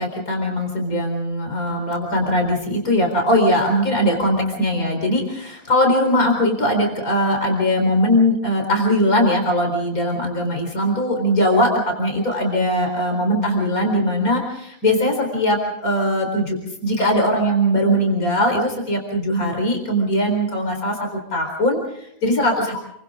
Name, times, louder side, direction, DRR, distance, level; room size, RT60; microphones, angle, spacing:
voice 1, 0.0-22.8, equal, 80° left, 2 dB, 4.7 m, -20 dB
29.0 x 24.5 x 3.7 m, 0.73 s
omnidirectional pair, 1.5 m